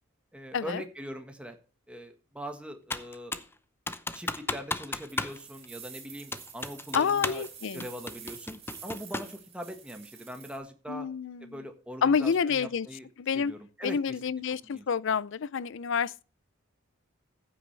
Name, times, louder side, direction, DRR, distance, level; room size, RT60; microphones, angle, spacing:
voice 1, 0.3-1.6 1.9-3.3 4.1-7.5 7.7-11.1 11.4-13.1 13.3-14.0 14.6-14.8, equal, 5° right, 1.5 m, -41 dB
Computer keyboard, 2.9-3.5 3.9-5.4 5.6-5.7 6.3-7.5 7.8-9.4, left 2 dB, 10° left, 0.6 m, -34 dB
sound 1, 5.0-10.6, right 8 dB, 30° right, 4.2 m, -49 dB
voice 2, 6.9-7.9 10.9-11.6 12.0-12.9 13.2-13.5 13.8-16.2, left 6 dB, 60° left, 0.5 m, -28 dB
15.0 x 8.4 x 3.4 m
head